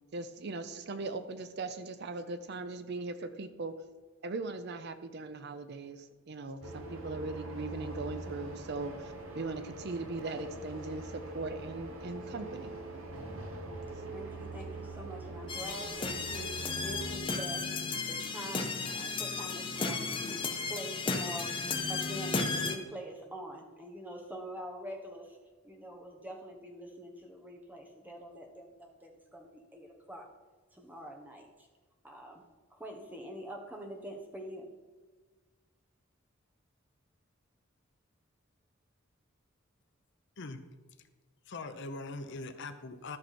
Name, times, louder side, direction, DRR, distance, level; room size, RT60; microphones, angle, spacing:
voice 1, 0.1-3.7 4.2-12.7, right 3 dB, 50° right, 10 dB, 0.6 m, -39 dB
sound 1, 6.6-17.2, right 2 dB, 70° right, 1.4 m, -43 dB
voice 2, 14.1-17.6 18.1-21.5 21.9-25.4 25.6-30.3 30.7-31.7 32.0-32.4 32.7-34.7, equal, 10° right, 1 dB, 1.3 m, -45 dB
sound 2, 15.5-22.8, left 4 dB, 25° left, 0.8 m, -34 dB
voice 3, 41.5-43.2, left 3 dB, 55° left, 9 dB, 0.7 m, -41 dB
13.0 x 6.0 x 4.3 m, 1.3 s
head